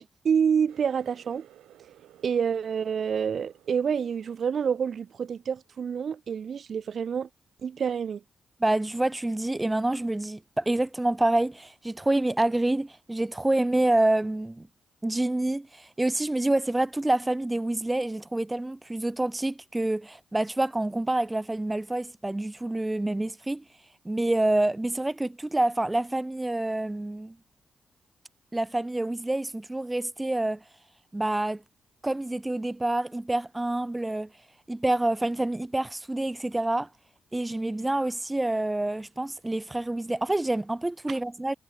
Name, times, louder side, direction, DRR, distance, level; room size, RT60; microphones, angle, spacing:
voice 1, 0.0-1.4 2.2-7.3 7.6-8.2 41.1-41.2, right 7 dB, 65° right, 1.4 m, -28 dB
Water tap faucet, 0.7-6.2 6.5-7.0 7.5-7.7 8.5-8.6, right 12 dB, 85° right, 7.8 m, -57 dB
voice 2, 8.6-14.7 15.0-23.6 24.0-27.4 28.5-30.6 31.1-31.6 32.0-34.3 34.7-36.9 37.3-41.5, right 2 dB, 20° right, 1.0 m, -27 dB
supercardioid pair, 45°, 0 cm